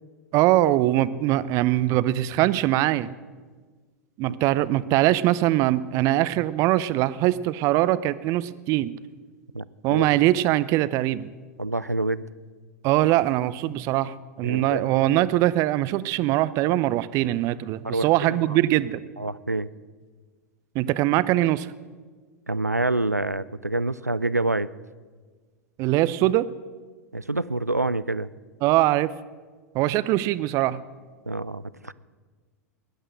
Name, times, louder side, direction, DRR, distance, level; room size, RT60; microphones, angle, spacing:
voice 1, 0.3-3.1 4.2-8.9 9.8-11.3 12.8-19.0 20.7-21.7 25.8-26.5 28.6-29.1 29.7-30.8, right 15 dB, 40° right, 18 dB, 0.6 m, -22 dB
voice 2, 9.5-10.1 11.6-12.2 14.4-14.8 17.8-18.4 19.2-19.7 22.5-24.7 27.1-28.3 31.3-31.9, right 2 dB, 90° right, 18 dB, 0.4 m, -27 dB
18.0 x 11.0 x 6.5 m, 1.4 s
figure-of-eight pair, 90°, 8 cm